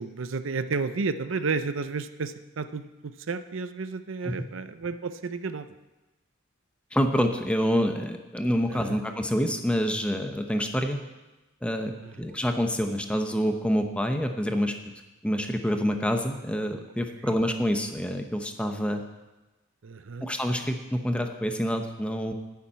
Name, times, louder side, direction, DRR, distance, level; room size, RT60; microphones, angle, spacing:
voice 1, 0.0-5.7 8.7-9.0 12.0-12.3 17.3-17.4 19.8-20.2, right 4 dB, 65° right, 11 dB, 0.6 m, -32 dB
voice 2, 6.9-11.0 11.6-14.9 15.2-19.0 20.2-22.3, equal, 5° left, 5 dB, 0.8 m, -27 dB
10.0 x 7.2 x 8.7 m, 1.1 s
head